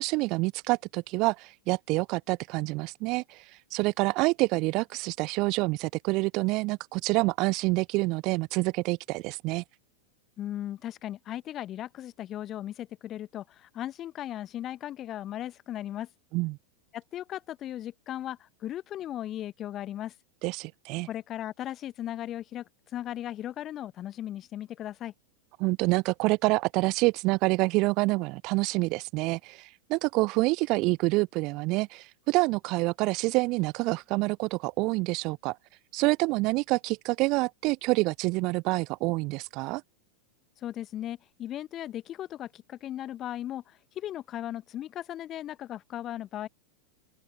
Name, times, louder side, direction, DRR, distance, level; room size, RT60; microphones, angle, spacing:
voice 1, 0.0-9.6 16.3-16.6 20.4-21.1 25.6-35.6 35.9-39.8, right 24 dB, 40° right, 0.3 m, -27 dB
voice 2, 10.4-16.1 16.9-20.1 21.1-25.1 40.6-46.5, left 12 dB, 30° left, 1.2 m, -37 dB
open air
figure-of-eight pair, 90°, 0 cm